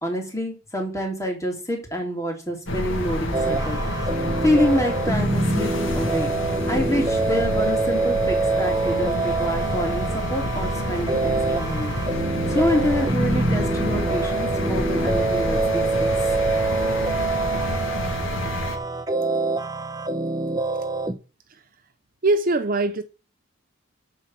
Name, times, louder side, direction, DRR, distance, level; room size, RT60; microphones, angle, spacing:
voice 1, 0.0-3.8 4.1-6.3 6.7-11.9 12.5-16.1, left 1 dB, 15° left, 3.1 m, -27 dB
sound 1, 2.7-18.8, left 1 dB, 70° left, 2.0 m, -28 dB
sound 2, 3.3-21.1, right 3 dB, 20° right, 0.9 m, -25 dB
voice 2, 22.2-23.0, right 2 dB, 45° right, 0.7 m, -22 dB
9.9 x 4.6 x 7.5 m
head